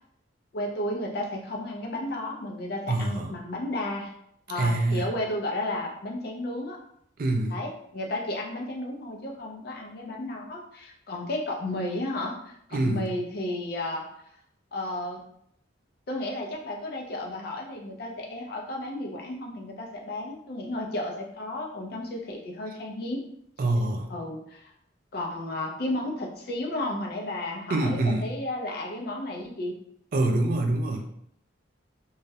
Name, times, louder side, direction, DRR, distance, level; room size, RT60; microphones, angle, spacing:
voice 1, 0.5-4.1 4.5-6.8 7.5-14.0 14.7-15.2 16.1-23.2 24.1-24.7 25.1-29.7, left 1 dB, 50° left, 0 dB, 0.4 m, -33 dB
voice 2, 2.9-3.3 4.6-5.0 7.2-7.5 12.7-13.1 23.6-24.1 27.7-28.3 30.1-31.0, right 2 dB, 45° right, 3 dB, 0.3 m, -25 dB
2.3 x 2.0 x 2.7 m, 0.71 s
head